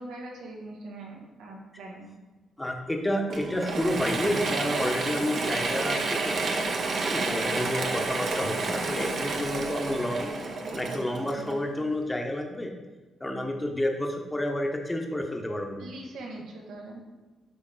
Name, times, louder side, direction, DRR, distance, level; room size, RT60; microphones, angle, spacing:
voice 1, 0.0-2.1 15.8-17.0, right 2 dB, 90° right, -1 dB, 1.4 m, -42 dB
voice 2, 2.6-6.6 7.1-10.3 10.7-12.7 13.2-15.9, left 1 dB, 15° left, 2 dB, 1.1 m, -30 dB
Mechanisms / Drill, 3.3-11.9, right 3 dB, 60° right, 0.9 m, -30 dB
10.5 x 3.5 x 3.9 m, 1.2 s
cardioid pair, 85°, 0 cm